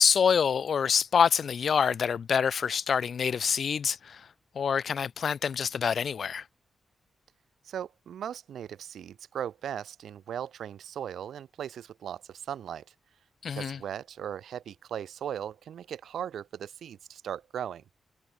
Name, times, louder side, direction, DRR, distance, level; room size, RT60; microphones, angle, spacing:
voice 1, 0.0-4.2 4.6-6.4 13.4-13.8, left 7 dB, 65° left, 0.4 m, -26 dB
voice 2, 7.7-12.8 13.5-17.8, right 9 dB, 80° right, 0.5 m, -38 dB
supercardioid pair, 45°, 0 cm